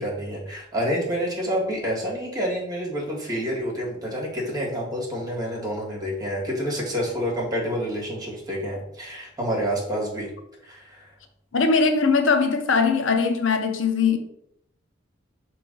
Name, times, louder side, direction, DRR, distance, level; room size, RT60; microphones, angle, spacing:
voice 1, 0.0-10.3 10.6-11.1, equal, 20° right, 2.0 m, -28 dB
voice 2, 11.5-14.2, left 4 dB, 70° left, 0.6 m, -20 dB
5.9 x 3.1 x 5.3 m
head